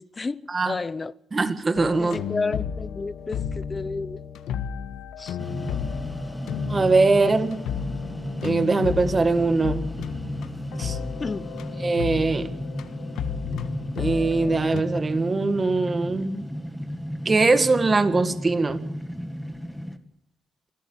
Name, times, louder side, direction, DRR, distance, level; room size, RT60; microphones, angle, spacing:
voice 1, 0.0-1.1 2.0-4.2 5.2-5.4 11.2-11.5, left 3 dB, 25° left, 0.9 m, -31 dB
voice 2, 1.3-2.2 6.7-7.6 8.4-9.9 10.8-11.0 11.8-12.5 14.0-16.5 17.3-18.8, right 3 dB, 30° right, 1.8 m, -22 dB
sound 1, 1.7-14.8, left 8 dB, 80° left, 1.5 m, -33 dB
sound 2, 5.4-20.0, equal, ahead, 1.9 m, -34 dB
26.0 x 14.0 x 9.1 m
cardioid pair, 90°, 0 cm